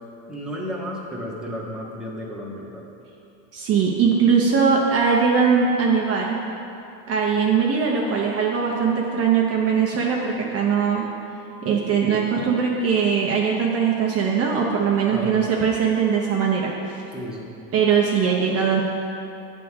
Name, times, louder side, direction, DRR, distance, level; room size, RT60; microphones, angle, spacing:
voice 1, 0.3-2.9 15.1-15.4 17.1-17.6, equal, ahead, -4 dB, 1.0 m, -33 dB
voice 2, 3.5-6.4 7.1-11.0 11.6-17.0 17.7-18.8, right 6 dB, 35° right, -2 dB, 0.7 m, -21 dB
8.3 x 3.6 x 6.3 m, 2.7 s
supercardioid pair, 120°, 41 cm